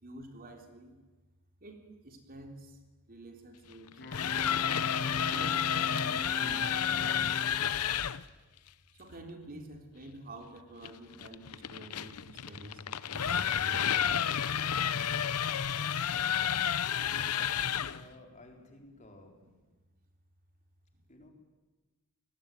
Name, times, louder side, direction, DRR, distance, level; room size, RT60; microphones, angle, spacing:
voice 1, 0.0-1.0 1.6-2.8 3.1-4.4 5.3-7.5 8.9-12.8 13.1-14.1 17.2-17.8 18.1-18.2 18.6-18.7 18.9-19.0 20.9-21.3, right 1 dB, 40° right, 3 dB, 3.5 m, -49 dB
sound 1, 3.9-8.2 10.8-18.0, left 8 dB, 90° left, 0.8 m, -31 dB
Wind instrument woodwind instrument, 4.0-7.7, left 1 dB, 50° left, 6.7 m, -42 dB
voice 2, 17.5-19.4 21.1-21.3, left 2 dB, 35° left, 2 dB, 4.3 m, -55 dB
27.5 x 20.0 x 9.4 m, 1.2 s
head